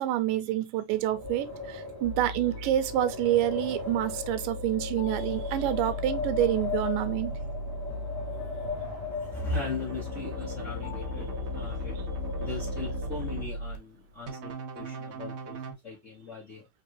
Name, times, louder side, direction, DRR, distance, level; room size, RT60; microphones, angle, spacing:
voice 1, 0.0-7.4, right 13 dB, 90° right, 2.4 m, -28 dB
Wind, 0.9-13.5, left 3 dB, 25° right, 1.4 m, -38 dB
sound 1, 2.0-13.8, left 1 dB, 70° left, 1.8 m, -38 dB
voice 2, 9.1-16.7, left 3 dB, 85° left, 0.6 m, -38 dB
sound 2, 9.5-13.5 14.3-15.7, left 1 dB, 50° right, 2.0 m, -39 dB
5.2 x 3.4 x 3.0 m
omnidirectional pair, 3.8 m